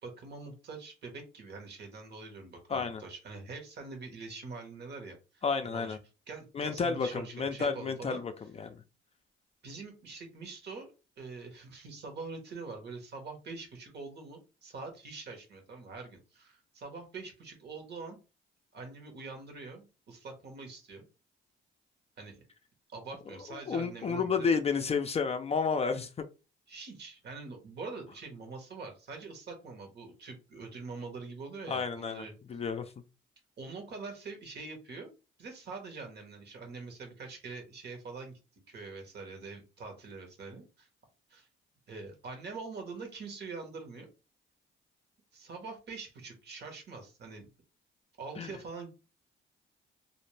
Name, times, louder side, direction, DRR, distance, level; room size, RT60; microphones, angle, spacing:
voice 1, 0.0-6.0 6.3-8.2 9.6-18.2 18.7-21.0 22.2-22.4 22.9-24.5 26.7-32.3 33.6-35.1 35.4-38.4 38.7-40.9 41.3-41.5 41.9-44.1 45.3-47.5 48.2-48.9, right 4 dB, 60° right, 1.1 m, -44 dB
voice 2, 2.7-3.0 5.4-6.0 6.5-8.8 23.5-26.2 31.7-32.9 48.4-48.5, left 5 dB, 30° left, 0.4 m, -31 dB
2.5 x 2.1 x 3.1 m
cardioid pair, 90°, 20 cm